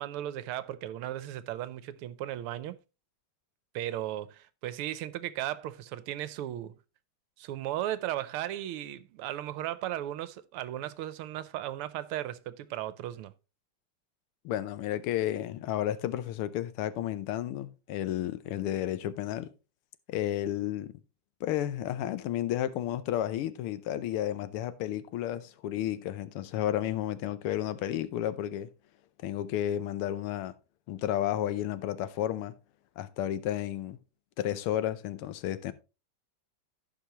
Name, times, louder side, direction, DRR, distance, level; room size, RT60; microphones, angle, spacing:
voice 1, 0.0-2.8 3.7-6.8 7.4-13.3, right 13 dB, 85° right, 1.6 m, -36 dB
voice 2, 14.4-19.5 20.1-20.9 21.4-28.7 29.2-30.5 30.9-32.5 33.0-34.0 34.4-35.7, left 12 dB, 85° left, 1.6 m, -32 dB
15.5 x 5.3 x 2.9 m
omnidirectional pair, 2.4 m